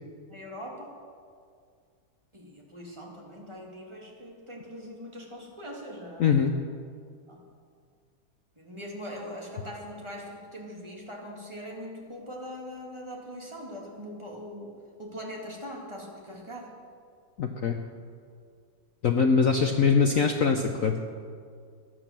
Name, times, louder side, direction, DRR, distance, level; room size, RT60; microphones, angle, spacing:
voice 1, 0.3-0.9 2.3-6.4 7.3-7.5 8.6-16.7, equal, 15° right, -2 dB, 2.5 m, -41 dB
voice 2, 6.2-6.5 17.4-17.8 19.0-21.0, left 5 dB, 60° left, 5 dB, 0.9 m, -23 dB
15.0 x 10.5 x 7.4 m, 2.2 s
omnidirectional pair, 2.2 m